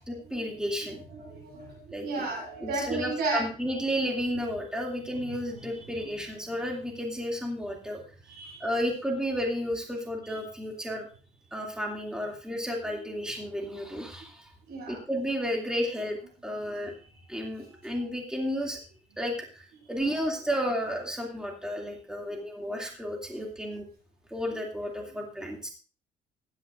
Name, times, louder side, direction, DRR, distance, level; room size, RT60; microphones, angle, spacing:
voice 1, 0.1-1.0 1.9-2.3 2.6-8.0 8.6-11.1 11.4-14.5 14.9-16.2 16.4-17.0 17.3-18.8 19.2-23.8 24.3-25.7, equal, 5° right, 0 dB, 2.6 m, -32 dB
voice 2, 1.1-3.4 5.3-5.6 8.3-8.7 14.7-15.0 21.8-21.9, right 3 dB, 75° right, -1 dB, 7.9 m, -34 dB
16.0 x 12.0 x 2.6 m, 0.38 s
cardioid pair, 110°, 17 cm